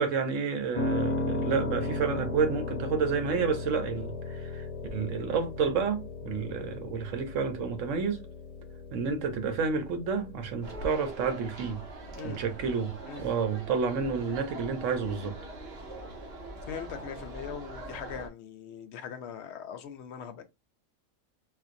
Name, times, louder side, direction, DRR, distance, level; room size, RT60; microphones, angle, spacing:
voice 1, 0.0-8.2 8.9-11.8 12.2-15.4, right 5 dB, 85° right, 1.1 m, -30 dB
Piano, 0.7-10.9, left 2 dB, 40° left, 0.6 m, -35 dB
sound 1, 10.6-18.3, right 2 dB, 60° right, 1.2 m, -42 dB
voice 2, 16.7-20.4, left 8 dB, 70° left, 0.8 m, -41 dB
4.3 x 2.1 x 2.6 m
omnidirectional pair, 1.3 m